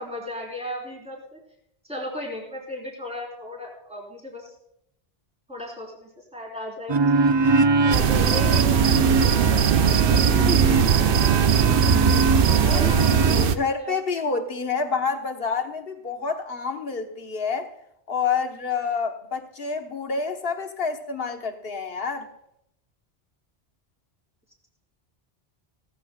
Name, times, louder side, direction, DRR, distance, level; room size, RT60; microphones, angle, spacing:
voice 1, 0.0-1.4 1.9-4.5 5.5-7.0 7.8-10.8 11.2-11.5 12.5-14.0, left 1 dB, 5° right, -2 dB, 4.1 m, -35 dB
sound 1, 6.9-13.5, right 4 dB, 40° right, 0.4 m, -23 dB
sound 2, 7.9-13.6, right 7 dB, 65° right, 0.8 m, -20 dB
voice 2, 12.6-13.0 13.6-17.7 18.1-22.3, left 5 dB, 70° left, 5 dB, 1.4 m, -28 dB
17.0 x 14.5 x 2.3 m, 0.74 s
omnidirectional pair, 1.0 m